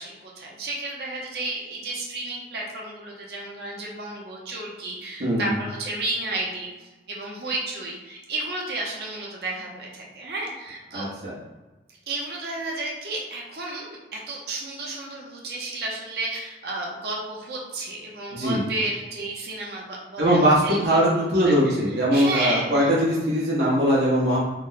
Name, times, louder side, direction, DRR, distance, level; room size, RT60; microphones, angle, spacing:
voice 1, 0.0-11.1 12.1-22.9, right 2 dB, 65° right, -2 dB, 0.7 m, -32 dB
voice 2, 10.9-11.3 18.3-18.6 20.2-24.4, equal, 80° right, -7 dB, 1.1 m, -21 dB
3.5 x 2.1 x 4.0 m, 1.2 s
head